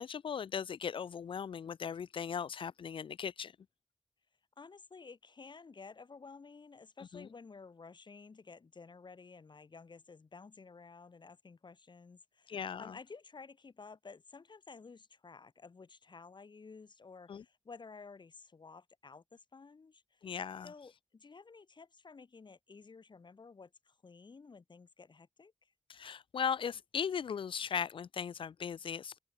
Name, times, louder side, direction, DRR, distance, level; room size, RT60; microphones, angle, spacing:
voice 1, 0.0-3.5 7.1-7.3 12.5-13.0 17.3-17.4 20.2-20.7 25.9-29.2, left 7 dB, 85° left, 0.4 m, -38 dB
voice 2, 4.6-20.3 20.6-25.7, left 4 dB, 60° left, 3.0 m, -53 dB
open air
wide cardioid pair, 85°, 9 cm